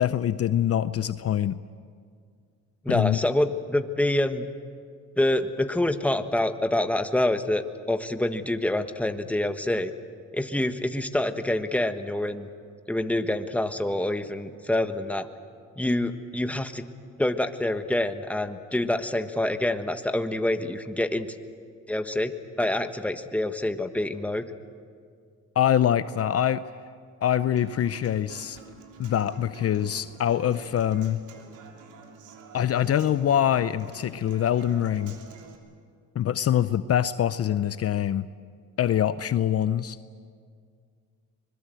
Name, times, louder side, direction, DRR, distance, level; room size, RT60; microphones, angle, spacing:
voice 1, 0.0-1.6 2.9-3.2 25.6-26.6 27.2-28.6 29.0-31.2 32.5-35.1 36.1-38.3 38.8-40.0, left 10 dB, 50° left, 14 dB, 0.6 m, -24 dB
voice 2, 2.8-4.5 5.2-9.9 10.3-12.5 12.9-15.3 15.8-16.8 17.2-21.3 21.9-24.4, left 1 dB, 5° left, 8 dB, 1.3 m, -26 dB
Human voice / Acoustic guitar, 27.6-35.6, right 4 dB, 90° right, 3.3 m, -47 dB
25.5 x 21.5 x 7.7 m, 2.1 s
cardioid pair, 90°, 30 cm